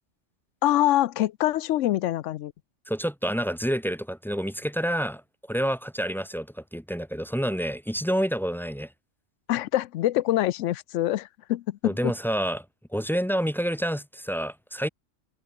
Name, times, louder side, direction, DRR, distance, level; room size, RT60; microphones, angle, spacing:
voice 1, 0.6-2.5 9.5-12.1, left 14 dB, 75° left, 0.9 m, -25 dB
voice 2, 2.9-5.2 5.5-8.9 11.8-12.6 12.9-14.9, equal, ahead, 0.5 m, -28 dB
open air
omnidirectional pair, 1.3 m